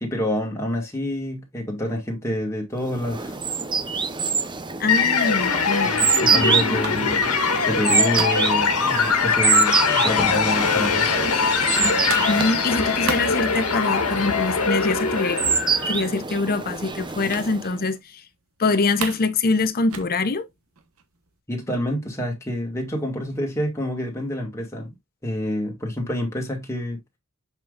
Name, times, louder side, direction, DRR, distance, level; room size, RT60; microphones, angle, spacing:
voice 1, 0.0-3.4 5.8-7.3 7.7-11.1 21.5-24.9 25.2-27.0, left 1 dB, 15° left, 1.8 m, -27 dB
sound 1, 2.9-17.8, right 5 dB, 20° right, 0.7 m, -26 dB
sound 2, 3.7-9.0 9.4-14.3 14.6-14.9 15.1-15.2 15.6-16.3 17.3-17.5 17.9-18.0 18.3-19.3 19.6-21.3, right 6 dB, 65° right, 1.1 m, -38 dB
voice 2, 4.8-6.0 12.3-15.4 15.9-18.0 18.6-20.5, left 3 dB, 45° left, 0.7 m, -24 dB
sound 3, 4.9-16.0, left 5 dB, 80° left, 1.7 m, -22 dB
6.8 x 5.9 x 2.4 m
head